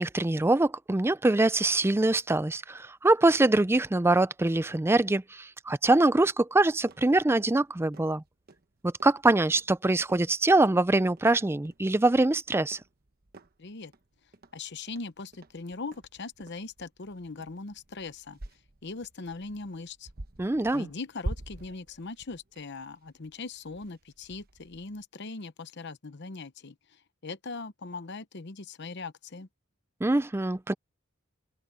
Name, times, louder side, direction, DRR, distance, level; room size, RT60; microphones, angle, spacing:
voice 1, 0.0-8.2 8.8-12.8 20.4-20.9 30.0-30.7, right 2 dB, 10° right, 0.4 m, -24 dB
sound 1, 6.7-25.0, right 1 dB, 50° right, 1.1 m, -47 dB
voice 2, 13.6-13.9 14.5-18.4 18.8-20.1 20.7-26.8 27.2-29.5, left 3 dB, 55° left, 0.9 m, -40 dB
open air
head